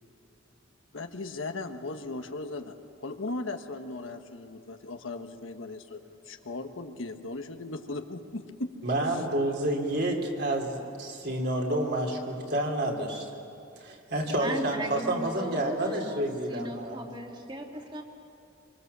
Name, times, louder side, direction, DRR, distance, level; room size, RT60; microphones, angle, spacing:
voice 1, 0.9-8.7, left 2 dB, 75° left, 6 dB, 1.4 m, -37 dB
voice 2, 8.8-13.3 13.8-17.0, right 1 dB, 55° right, 0 dB, 3.3 m, -29 dB
voice 3, 14.4-18.0, right 1 dB, 25° right, 1 dB, 2.6 m, -37 dB
26.5 x 24.5 x 6.9 m, 2.5 s
head